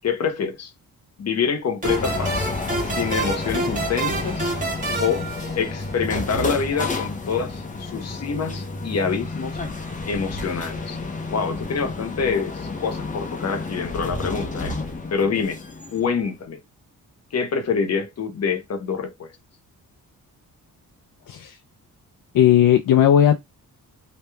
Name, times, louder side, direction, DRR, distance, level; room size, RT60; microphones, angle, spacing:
voice 1, 0.0-0.7 1.2-2.5 3.0-4.5 5.0-5.3 5.6-9.6 10.0-11.0 11.3-14.8 15.1-15.6 15.9-16.6 17.3-19.3, left 6 dB, 45° left, 1.0 m, -26 dB
sound 1, 1.8-16.4, left 3 dB, 20° left, 0.7 m, -30 dB
sound 2, 1.8-6.2, right 2 dB, 20° right, 1.5 m, -28 dB
voice 2, 22.3-23.4, left 10 dB, 65° left, 0.6 m, -16 dB
3.2 x 2.8 x 3.4 m
wide cardioid pair, 155°, 36 cm